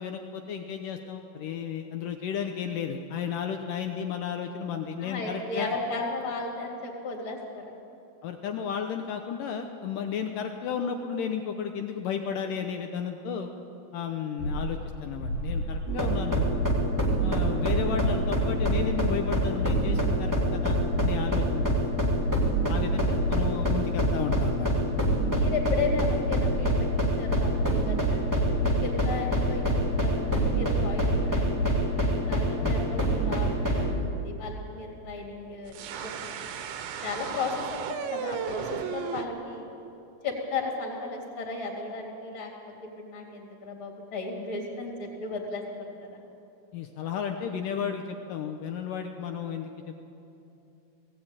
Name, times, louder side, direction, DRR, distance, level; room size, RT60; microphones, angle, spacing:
voice 1, 0.0-5.7 8.2-13.5 13.9-16.5 17.2-22.2 22.7-24.7 32.6-32.8 46.7-49.7, left 7 dB, 90° left, 5 dB, 1.8 m, -33 dB
voice 2, 5.0-7.7 24.9-26.9 27.2-36.4 37.0-39.7 40.2-42.5 42.8-46.2, left 3 dB, 30° left, 0 dB, 3.5 m, -35 dB
sound 1, 14.4-31.8, equal, 45° left, 3.2 m, -32 dB
sound 2, 15.9-33.9, right 1 dB, 25° right, 0.4 m, -26 dB
sound 3, 35.7-39.3, right 7 dB, 85° right, 3.5 m, -35 dB
19.5 x 17.5 x 8.9 m, 2.8 s
omnidirectional pair, 5.1 m